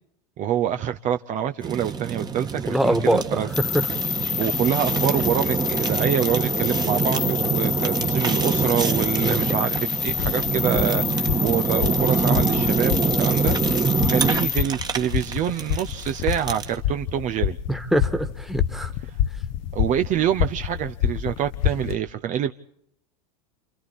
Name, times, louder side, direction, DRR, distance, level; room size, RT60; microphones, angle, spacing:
voice 1, 0.4-3.5 4.3-13.6 14.1-17.6 19.7-22.5, right 10 dB, 40° right, 0.8 m, -26 dB
Fire, 1.6-16.8, right 6 dB, 20° right, 1.5 m, -26 dB
voice 2, 2.7-3.2 3.6-3.9 9.2-9.5 17.7-18.9, right 1 dB, ahead, 1.6 m, -23 dB
sound 1, 3.5-14.6, left 9 dB, 30° left, 1.0 m, -28 dB
sound 2, 10.0-22.0, left 11 dB, 60° left, 0.9 m, -28 dB
29.0 x 27.0 x 4.2 m
hypercardioid pair, 105°, 20 cm